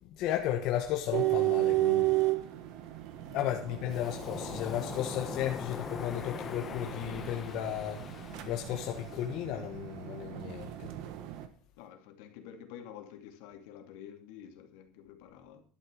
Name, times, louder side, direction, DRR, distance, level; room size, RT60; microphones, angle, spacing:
voice 1, 0.0-2.2 3.3-10.9, left 11 dB, 50° left, 1.3 m, -34 dB
sound 1, 1.1-11.5, right 18 dB, 60° right, 1.4 m, -34 dB
Waves surf, 3.9-9.3, left 7 dB, 25° left, 0.8 m, -42 dB
voice 2, 11.8-15.6, left 9 dB, 75° left, 2.5 m, -49 dB
11.5 x 8.3 x 6.4 m
cardioid pair, 175°, 0 cm